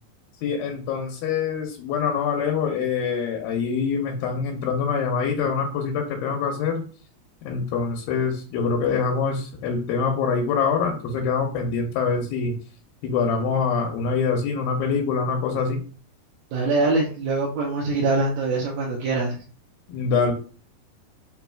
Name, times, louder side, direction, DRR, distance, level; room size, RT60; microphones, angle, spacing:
voice 1, 0.4-6.8 7.4-12.5 13.0-15.8 19.9-20.3, left 5 dB, 85° left, 1 dB, 2.5 m, -25 dB
voice 2, 16.5-19.4, right 3 dB, 75° right, -3 dB, 2.4 m, -23 dB
6.1 x 2.8 x 2.3 m, 0.38 s
omnidirectional pair, 4.3 m